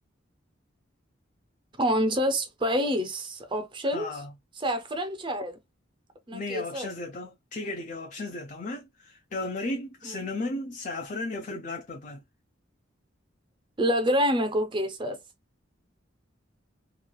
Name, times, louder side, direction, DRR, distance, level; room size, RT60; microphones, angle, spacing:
voice 1, 1.8-4.1 4.6-5.6 6.3-6.9 10.0-10.2 13.8-15.2, equal, 25° right, 0.5 m, -27 dB
voice 2, 3.9-4.3 6.3-12.2, left 2 dB, 40° left, 0.4 m, -35 dB
3.0 x 2.3 x 2.3 m
head